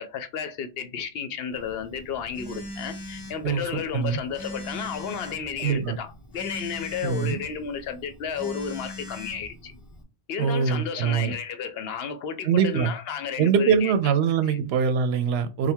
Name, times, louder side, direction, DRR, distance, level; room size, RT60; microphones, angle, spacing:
voice 1, 0.0-9.7 10.3-13.9 14.4-14.6, left 7 dB, 70° left, 0.8 m, -32 dB
Telephone, 1.5-10.0, left 1 dB, 25° left, 0.6 m, -41 dB
voice 2, 3.4-4.2 5.6-6.0 7.0-7.4 10.4-11.3 12.4-12.9 13.4-15.7, right 7 dB, 75° right, 0.8 m, -23 dB
3.4 x 2.2 x 4.3 m
omnidirectional pair, 1.1 m